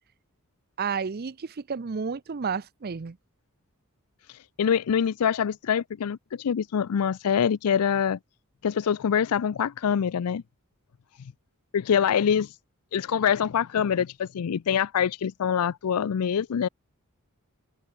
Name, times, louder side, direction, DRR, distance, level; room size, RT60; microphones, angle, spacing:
voice 1, 0.8-3.2, right 5 dB, 45° right, 0.5 m, -31 dB
voice 2, 4.3-8.2 8.6-10.4 11.7-12.5 12.9-16.7, left 8 dB, 85° left, 0.4 m, -25 dB
head